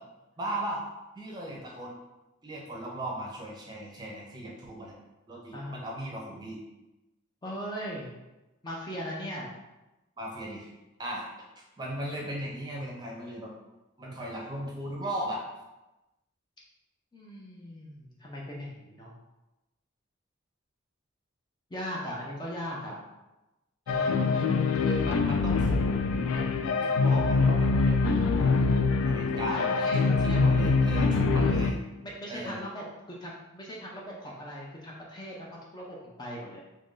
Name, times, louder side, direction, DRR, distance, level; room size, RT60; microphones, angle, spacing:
voice 1, 0.4-0.8 1.2-1.9 2.4-4.9 5.3-6.6 10.2-10.7 11.0-11.2 11.8-13.5 14.0-15.4 23.9-24.3 24.8-25.8 26.3-28.5 29.0-29.7 30.2-31.7 32.3-32.6, right 1 dB, 20° right, -2 dB, 0.6 m, -37 dB
voice 2, 7.4-8.1 8.6-9.5 17.1-19.1 21.7-23.0 29.5-30.4 32.0-35.5 35.7-36.6, equal, 20° left, -3 dB, 0.5 m, -39 dB
sound 1, 23.9-31.7, left 4 dB, 85° left, 0.3 m, -24 dB
3.1 x 2.5 x 3.7 m, 1.0 s
head